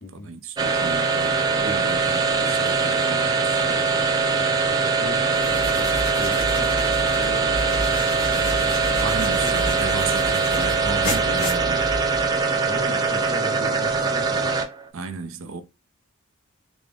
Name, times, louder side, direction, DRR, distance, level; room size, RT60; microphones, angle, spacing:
voice 1, 0.1-3.9 9.0-11.9 14.9-15.6, right 4 dB, 75° right, 0.5 m, -34 dB
sound 1, 0.6-14.9, right 4 dB, 20° right, 0.3 m, -22 dB
sound 2, 1.4-13.9, right 4 dB, 20° left, 1.4 m, -41 dB
voice 2, 4.9-7.8 8.3-9.6 12.6-14.5, left 1 dB, 45° left, 0.7 m, -38 dB
sound 3, 5.3-12.3, equal, 75° left, 1.5 m, -32 dB
3.4 x 2.0 x 3.4 m
head